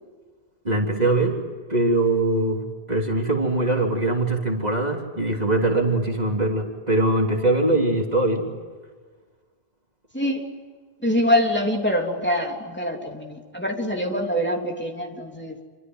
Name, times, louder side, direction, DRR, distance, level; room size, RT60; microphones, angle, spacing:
voice 1, 0.6-1.4 1.7-8.5, right 2 dB, 40° right, 1 dB, 3.5 m, -22 dB
voice 2, 11.0-15.6, left 1 dB, 10° left, 1 dB, 3.3 m, -24 dB
28.5 x 25.5 x 8.1 m, 1.5 s
omnidirectional pair, 1.0 m